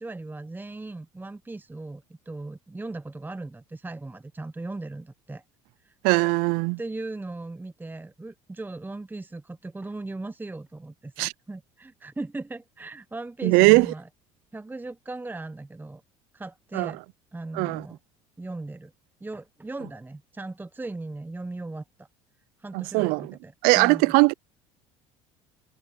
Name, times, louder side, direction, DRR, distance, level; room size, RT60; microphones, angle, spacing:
voice 1, 0.0-5.4 5.8-5.9 6.8-14.1 14.5-16.0 16.3-17.0 17.3-18.0 18.4-18.9 19.2-22.1 22.6-24.1, right 2 dB, 10° right, 1.1 m, -38 dB
voice 2, 6.0-6.8 11.2-11.3 13.4-13.9 16.7-16.9 17.5-17.8 22.7-23.3 23.6-24.3, right 28 dB, 65° right, 0.5 m, -20 dB
hypercardioid pair, 65°, 16 cm